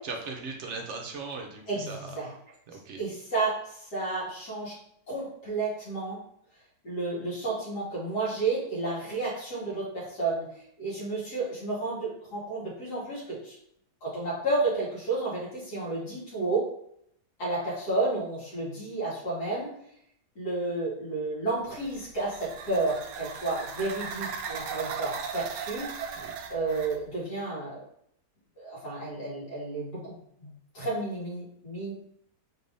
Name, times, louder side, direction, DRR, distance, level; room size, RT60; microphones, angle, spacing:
voice 1, 0.0-2.2 2.7-3.0 26.1-26.3, right 4 dB, 60° right, 2 dB, 0.8 m, -38 dB
voice 2, 1.7-2.3 3.0-4.7 5.1-6.2 6.8-10.5 10.8-13.5 14.0-16.7 17.4-19.7 20.4-25.9 26.5-27.8 28.6-30.5 30.7-31.9, right 2 dB, 70° left, -7 dB, 2.5 m, -31 dB
sound 1, 21.7-27.0, right 6 dB, 80° right, 1.1 m, -37 dB
4.3 x 3.5 x 2.6 m, 0.71 s
omnidirectional pair, 1.8 m